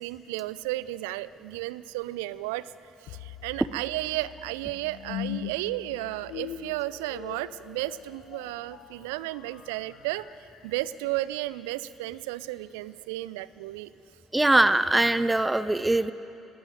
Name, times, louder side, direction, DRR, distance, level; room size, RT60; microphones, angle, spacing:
voice 1, 0.0-2.7 3.0-13.9, right 17 dB, 70° right, 17 dB, 0.4 m, -33 dB
sound 1, 3.1-12.2, left 11 dB, 65° left, 0.6 m, -42 dB
voice 2, 14.3-16.1, right 2 dB, 15° right, 15 dB, 0.6 m, -22 dB
19.0 x 15.5 x 9.1 m, 2.9 s
figure-of-eight pair, 50°, 0 cm